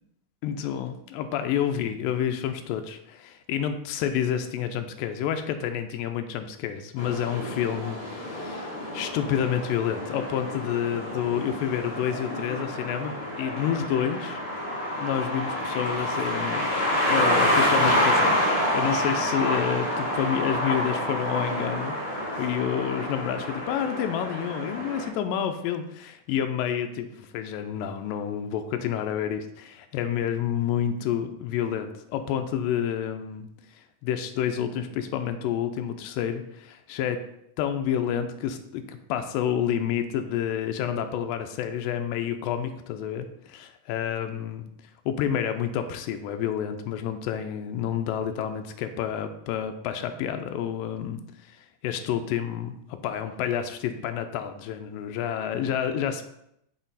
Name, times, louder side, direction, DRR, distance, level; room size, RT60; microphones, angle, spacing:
voice 1, 0.4-14.4 15.0-16.7 17.1-22.0 22.4-33.5 34.0-37.2 37.6-44.7 45.1-51.2 51.5-56.2, left 9 dB, 90° left, 7 dB, 2.3 m, -29 dB
sound 1, 7.0-25.1, left 1 dB, 60° left, 3.4 m, -28 dB
6.3 x 3.9 x 4.0 m, 0.78 s
omnidirectional pair, 3.9 m